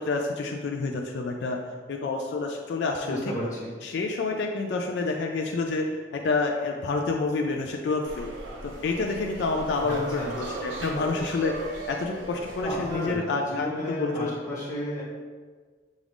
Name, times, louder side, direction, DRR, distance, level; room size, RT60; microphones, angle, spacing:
voice 1, 0.0-1.6 1.9-3.2 3.8-8.3 8.6-14.3, left 3 dB, 65° left, 2 dB, 0.3 m, -28 dB
voice 2, 3.0-3.7 9.8-10.3 12.6-15.0, equal, 30° left, -10 dB, 1.1 m, -33 dB
sound 1, 8.0-13.2, right 2 dB, 80° right, 0.7 m, -38 dB
6.3 x 2.4 x 3.4 m, 1.5 s
head